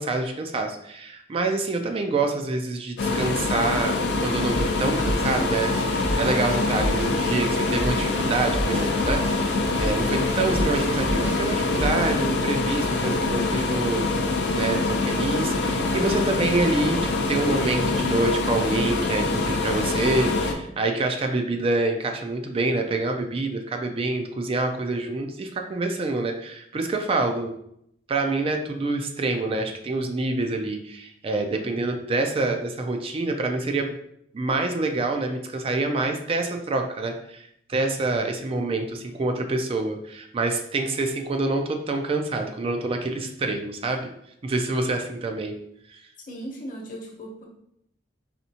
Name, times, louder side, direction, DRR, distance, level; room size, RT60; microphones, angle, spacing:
voice 1, 0.0-4.0 4.2-14.1 14.5-17.0 17.3-27.5 28.1-33.9 34.3-44.1 44.4-45.6 45.9-46.0, right 2 dB, 30° right, 4 dB, 0.4 m, -26 dB
sound 1, 3.0-20.5, left 3 dB, 70° left, 0.5 m, -25 dB
sound 2, 4.1-12.1, equal, 85° right, 1.0 m, -31 dB
voice 2, 46.3-47.5, right 1 dB, 50° left, -1 dB, 1.0 m, -37 dB
4.2 x 3.4 x 2.8 m, 0.75 s
head